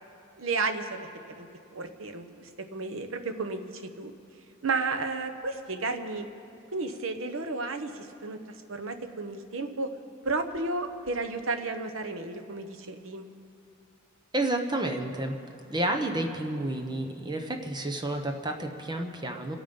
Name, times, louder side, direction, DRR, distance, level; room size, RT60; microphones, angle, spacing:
voice 1, 0.4-1.1 1.3-1.5 1.7-3.6 4.0-4.1 4.6-6.3 6.7-8.4 8.7-9.9 10.2-13.2, right 3 dB, 70° right, 7 dB, 1.0 m, -32 dB
voice 2, 14.3-15.4 15.7-19.6, right 1 dB, 20° right, 4 dB, 1.0 m, -30 dB
26.0 x 9.0 x 5.4 m, 2.7 s
head